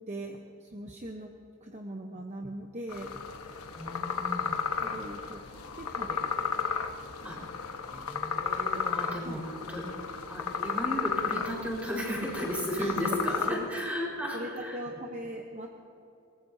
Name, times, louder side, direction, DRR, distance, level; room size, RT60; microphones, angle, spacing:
voice 1, 0.1-1.3 1.6-3.2 4.8-5.4 5.8-6.8 7.2-7.5 9.2-9.4 12.8-13.2 13.5-13.7 14.3-15.7, right 1 dB, 35° right, 2 dB, 0.9 m, -40 dB
sound 1, 2.9-13.5, left 6 dB, 85° left, 1.2 m, -33 dB
voice 2, 3.7-4.6 7.2-7.4 7.9-9.8 10.3-14.8, equal, 5° right, -4 dB, 4.5 m, -35 dB
23.5 x 20.0 x 2.7 m, 2.7 s
head